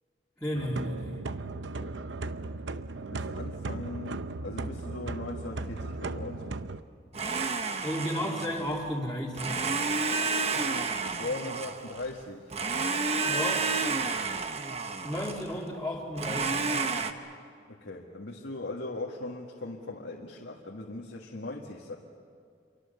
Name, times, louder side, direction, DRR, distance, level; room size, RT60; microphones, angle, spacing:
voice 1, 0.4-1.2 7.8-9.6 13.2-13.8 15.0-16.7, equal, 5° left, -7 dB, 2.6 m, -33 dB
sound 1, 0.5-6.8, right 3 dB, 90° right, 0.8 m, -36 dB
voice 2, 1.6-2.0 3.0-6.6 11.0-12.5 17.7-22.0, left 2 dB, 85° left, -1 dB, 1.8 m, -39 dB
Domestic sounds home sounds, 7.1-8.8 9.3-12.1 12.5-15.5 16.2-17.1, right 4 dB, 35° right, 1.1 m, -30 dB
28.0 x 24.0 x 6.9 m, 2.3 s
head